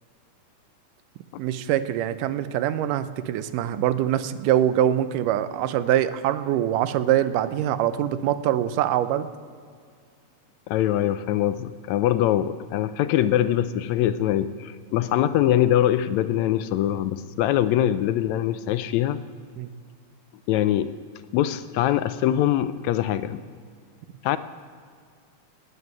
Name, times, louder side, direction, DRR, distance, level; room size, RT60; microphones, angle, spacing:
voice 1, 1.4-9.3 19.6-19.7, right 11 dB, 90° right, 13 dB, 2.3 m, -24 dB
voice 2, 10.7-19.2 20.5-20.9 21.3-23.4 24.2-24.4, left 12 dB, 80° left, 13 dB, 1.6 m, -23 dB
18.5 x 8.1 x 9.4 m, 2.1 s
omnidirectional pair, 3.7 m